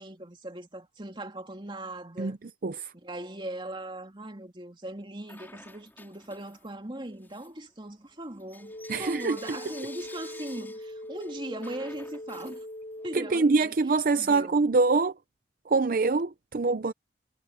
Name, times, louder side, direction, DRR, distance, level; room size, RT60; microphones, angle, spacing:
voice 1, 0.0-2.4 2.9-12.7 13.0-13.8 14.1-14.6, right 1 dB, 30° right, 2.7 m, -39 dB
Bell / Coin (dropping), 5.2-6.8 7.2-13.2, left 2 dB, 10° left, 3.9 m, -51 dB
sound 1, 8.6-13.6, left 1 dB, 40° left, 1.8 m, -41 dB
voice 2, 8.9-9.4 13.1-15.2 15.7-16.9, right 3 dB, 50° right, 0.5 m, -24 dB
head